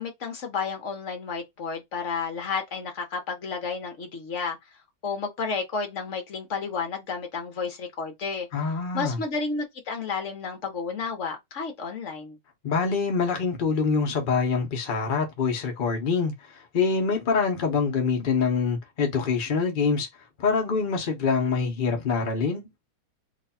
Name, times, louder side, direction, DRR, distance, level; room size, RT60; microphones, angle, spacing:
voice 1, 0.0-4.6 5.0-8.5 8.9-12.4, left 5 dB, 50° left, 0.9 m, -31 dB
voice 2, 8.5-9.2 12.6-20.1 20.4-22.7, left 5 dB, 85° left, 0.4 m, -25 dB
3.3 x 2.3 x 4.1 m
omnidirectional pair, 2.2 m